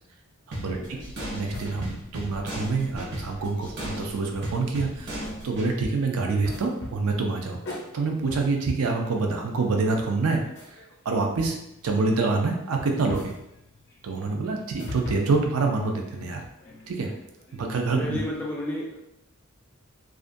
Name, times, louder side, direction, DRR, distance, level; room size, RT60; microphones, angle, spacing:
sound 1, 0.5-5.7, equal, 55° right, 0.7 m, -36 dB
voice 1, 0.7-1.0 18.0-19.1, left 1 dB, 10° left, -3 dB, 0.3 m, -32 dB
voice 2, 1.3-7.6 7.9-10.4 11.1-11.6 11.8-13.3 14.0-16.4 16.9-17.1 17.5-18.2, right 3 dB, 80° right, 2 dB, 0.4 m, -26 dB
sound 2, 1.5-3.9 4.2-4.4 4.8-5.8 6.4-12.5 12.9-18.5, left 2 dB, 50° left, 0.6 m, -43 dB
2.4 x 2.1 x 2.5 m, 0.82 s
head